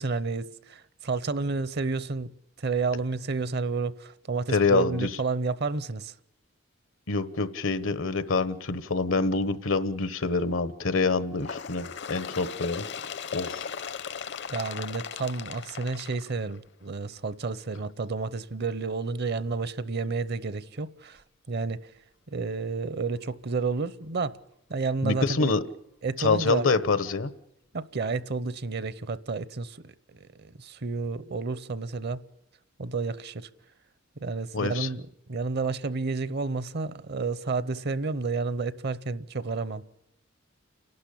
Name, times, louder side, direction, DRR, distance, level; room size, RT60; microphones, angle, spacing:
voice 1, 0.0-2.3 2.6-6.1 14.5-21.2 21.5-21.9 22.3-24.4 24.7-25.5 26.0-26.7 27.7-32.2 32.8-33.5 34.2-39.8, right 4 dB, 55° right, 0.8 m, -31 dB
voice 2, 4.5-5.1 7.1-12.8 13.3-13.7 25.0-25.6 26.2-27.3 34.5-34.9, left 4 dB, 80° left, 1.1 m, -26 dB
Bird, 11.4-16.8 17.7-17.8 18.2-18.3 19.2-19.3 20.2-20.3 21.2-21.3, left 7 dB, 60° left, 0.7 m, -38 dB
29.5 x 12.0 x 8.5 m
head